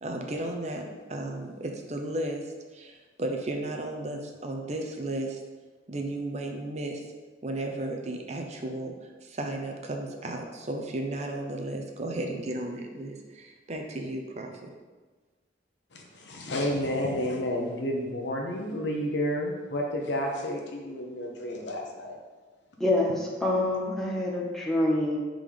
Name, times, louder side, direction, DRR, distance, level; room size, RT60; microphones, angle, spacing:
voice 1, 0.0-2.4 2.7-5.4 5.9-7.0 7.4-14.5, right 1 dB, 35° right, 2 dB, 0.6 m, -34 dB
voice 2, 15.9-22.2, left 1 dB, 70° left, 1 dB, 0.9 m, -31 dB
voice 3, 22.8-23.2 23.4-25.2, left 1 dB, ahead, -3 dB, 0.8 m, -26 dB
5.2 x 3.8 x 4.9 m, 1.3 s
head